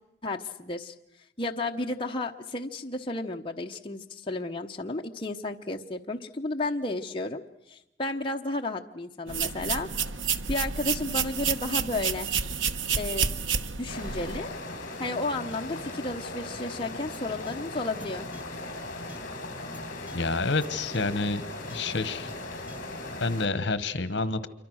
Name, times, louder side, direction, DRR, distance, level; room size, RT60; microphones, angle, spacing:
voice 1, 0.2-0.9 1.4-9.9 10.5-12.3 12.9-13.3 13.8-14.5 15.0-18.3, left 2 dB, 25° left, 2 dB, 0.9 m, -32 dB
sound 1, 9.3-14.4, right 6 dB, 85° right, 1.1 m, -29 dB
sound 2, 13.9-23.5, left 2 dB, 45° left, 5.2 m, -38 dB
sound 3, 17.1-17.2 17.5-17.6 18.0-18.1 18.3-18.4 19.1-19.2 19.7-19.8 20.1-20.2 20.6-20.7 20.9-21.0 21.7-21.8 22.7-22.8, right 1 dB, 10° right, 1.1 m, -45 dB
voice 2, 20.1-21.4 21.7-22.3 23.2-24.5, left 3 dB, 65° left, 15 dB, 1.3 m, -28 dB
27.0 x 24.0 x 6.4 m, 0.83 s
head